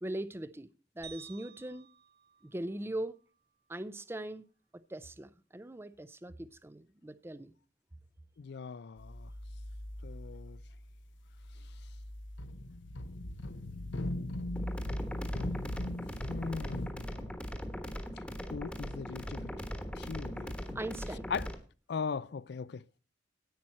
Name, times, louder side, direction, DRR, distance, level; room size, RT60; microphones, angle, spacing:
voice 1, 0.0-0.7 1.0-1.9 2.4-3.2 3.7-4.4 4.9-7.5 20.7-21.3, right 1 dB, 15° right, 0.5 m, -40 dB
sound 1, 1.0-3.4, right 8 dB, 55° right, 1.7 m, -54 dB
voice 2, 8.4-9.3 10.0-10.6 16.3-17.3 18.5-19.5 20.0-20.8 21.3-21.5 21.9-22.8, left 5 dB, 60° left, 0.4 m, -39 dB
sound 2, 9.0-10.9 11.3-16.9, left 1 dB, 80° left, 0.9 m, -40 dB
sound 3, 14.6-21.6, equal, 5° left, 1.2 m, -40 dB
10.5 x 8.9 x 4.2 m
head